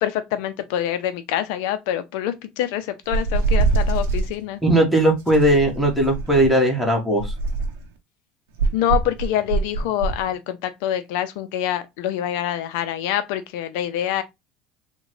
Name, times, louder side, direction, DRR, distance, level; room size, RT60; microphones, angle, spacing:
voice 1, 0.0-4.6 8.7-14.2, left 11 dB, 80° left, 0.4 m, -25 dB
sound 1, 3.1-4.3 5.3-6.5 7.2-7.9 8.6-10.2, right 3 dB, 85° right, 0.6 m, -23 dB
voice 2, 4.6-7.3, right 1 dB, ahead, 1.2 m, -18 dB
3.6 x 2.2 x 3.0 m
supercardioid pair, 115°, 0 cm